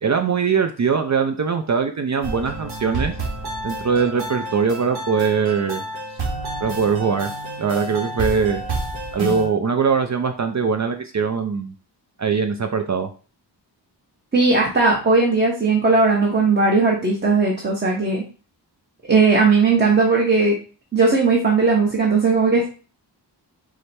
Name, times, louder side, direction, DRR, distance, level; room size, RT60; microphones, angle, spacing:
voice 1, 0.0-3.1 3.6-5.8 6.6-7.3 7.6-8.6 9.1-11.7 12.2-13.1, right 5 dB, 40° right, 6 dB, 0.4 m, -21 dB
sound 1, 2.2-9.5, right 2 dB, 60° right, 1.3 m, -29 dB
voice 2, 14.3-18.2 19.1-20.6 20.9-22.7, right 3 dB, 25° right, -2 dB, 0.9 m, -17 dB
4.8 x 2.2 x 4.2 m, 0.36 s
wide cardioid pair, 115°, 43 cm